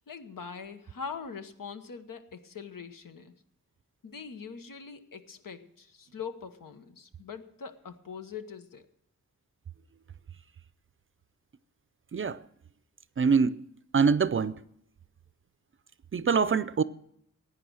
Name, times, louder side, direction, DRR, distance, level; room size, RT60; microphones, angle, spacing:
voice 1, 0.1-3.3 4.0-8.9, left 6 dB, 80° left, 1.2 m, -42 dB
voice 2, 12.1-12.4 13.2-13.7 13.9-14.6 16.1-16.8, right 5 dB, 40° right, 0.4 m, -24 dB
15.5 x 9.6 x 6.3 m
wide cardioid pair, 130°, 33 cm